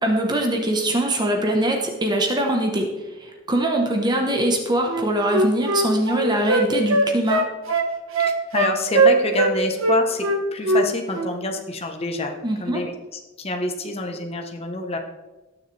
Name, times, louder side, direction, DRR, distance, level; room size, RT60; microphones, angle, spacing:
voice 1, 0.0-2.9 3.2-7.4 12.4-12.8, right 1 dB, 20° right, 2 dB, 1.1 m, -22 dB
Wind instrument woodwind instrument, 4.9-9.5 9.8-10.9 11.1-11.3, right 2 dB, 75° right, 1.2 m, -20 dB
voice 2, 8.2-15.0, left 2 dB, 30° left, 4 dB, 1.0 m, -27 dB
19.0 x 6.6 x 3.3 m, 1.2 s
head